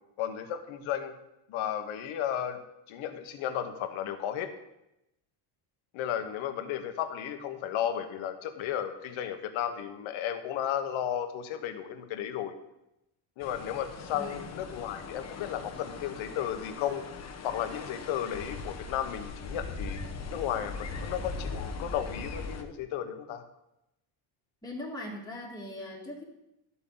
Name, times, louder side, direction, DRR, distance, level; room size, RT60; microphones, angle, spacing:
voice 1, 0.2-1.1 1.5-2.6 2.9-4.5 5.9-12.5 13.4-17.2 17.4-20.0 20.3-23.4, left 10 dB, 70° left, 8 dB, 1.3 m, -34 dB
sound 1, 13.4-22.6, left 4 dB, 30° left, 1.0 m, -40 dB
voice 2, 14.1-14.5 24.6-26.2, left 1 dB, 10° left, -2 dB, 1.9 m, -40 dB
12.5 x 8.2 x 4.0 m, 0.88 s
cardioid pair, 155°, 50 cm